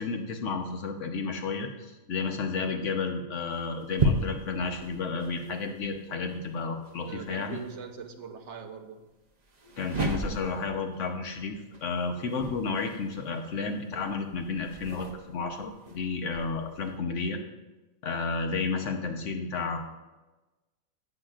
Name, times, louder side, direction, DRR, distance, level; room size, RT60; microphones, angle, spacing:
voice 1, 0.0-7.6 9.8-17.4 18.0-19.8, left 4 dB, 60° left, 4 dB, 1.3 m, -32 dB
sound 1, 3.5-7.8 9.4-17.0, right 1 dB, 35° right, 0.9 m, -35 dB
voice 2, 7.0-9.1, right 6 dB, 60° right, 5 dB, 1.1 m, -42 dB
17.5 x 5.9 x 2.5 m, 1.1 s
omnidirectional pair, 1.5 m